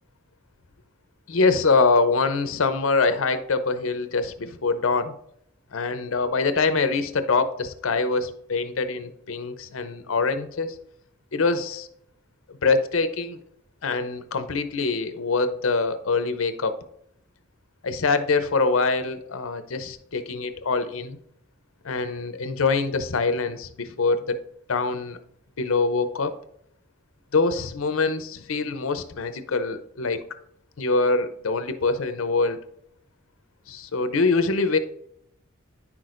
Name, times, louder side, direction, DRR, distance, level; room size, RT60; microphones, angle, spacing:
voice 1, 1.3-5.1 5.7-10.8 11.3-11.9 12.6-13.4 13.8-16.8 17.8-21.2 21.8-24.4 24.7-25.2 25.6-26.3 27.3-30.2 30.8-32.6 33.7-34.8, left 4 dB, 65° left, 10 dB, 0.6 m, -24 dB
9.7 x 6.1 x 2.5 m, 0.72 s
head